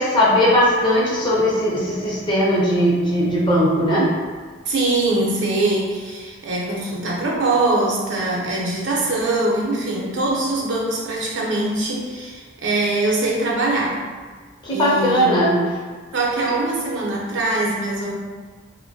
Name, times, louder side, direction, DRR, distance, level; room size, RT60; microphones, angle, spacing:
voice 1, 0.0-4.1 14.6-15.7, equal, 25° left, -6 dB, 0.6 m, -18 dB
voice 2, 4.7-14.0 14.7-15.4 16.1-18.1, right 2 dB, 70° right, -3 dB, 0.6 m, -22 dB
3.0 x 2.1 x 2.6 m, 1.5 s
head